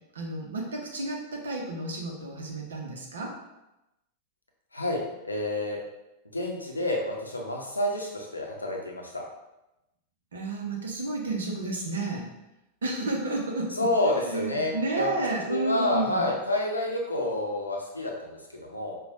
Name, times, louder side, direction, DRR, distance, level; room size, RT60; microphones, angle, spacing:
voice 1, 0.1-3.4 10.3-12.3 12.8-13.8 14.2-16.3, right 2 dB, 65° right, 1 dB, 0.7 m, -31 dB
voice 2, 4.7-5.8 6.3-9.2 13.8-15.1 15.5-19.0, left 1 dB, 80° left, 0 dB, 0.6 m, -29 dB
5.0 x 2.3 x 2.5 m, 0.93 s
figure-of-eight pair, 90°, 0 cm